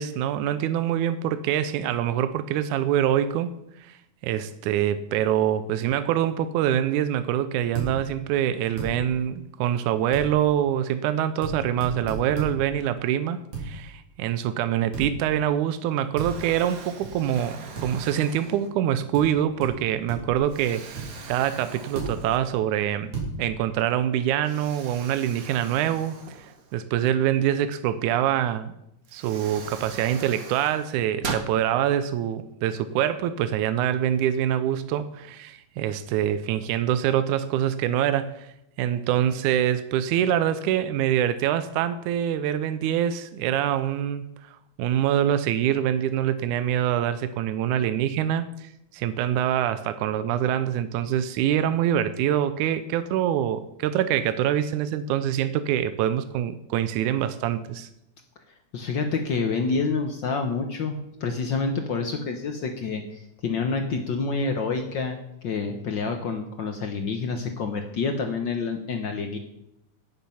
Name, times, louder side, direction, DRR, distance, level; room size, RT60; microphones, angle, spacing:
voice 1, 0.0-3.5 3.8-4.0 4.2-23.1 23.4-26.5 26.7-28.7 29.1-57.9, right 10 dB, 85° right, 12 dB, 2.1 m, -25 dB
sound 1, 7.7-7.9 8.8-8.9 10.1-10.3 11.4-11.5 11.8-12.5 13.5-13.7 14.9-15.1 16.2-16.3 17.0-17.1 17.7-17.9 19.1-19.2 19.6-19.7 20.1-20.4 20.9-21.1 21.9-22.1 23.1-23.3, right 5 dB, 50° right, 4.4 m, -32 dB
Explosion, 15.8-15.9 16.2-19.0 19.6-19.8 20.5-22.7 23.1-23.2 24.4-27.1 28.5-28.6 29.0-31.5, right 5 dB, 65° right, 0.8 m, -40 dB
voice 2, 58.7-69.4, left 4 dB, 75° left, 5 dB, 1.0 m, -28 dB
16.5 x 7.5 x 5.6 m, 0.83 s
omnidirectional pair, 3.4 m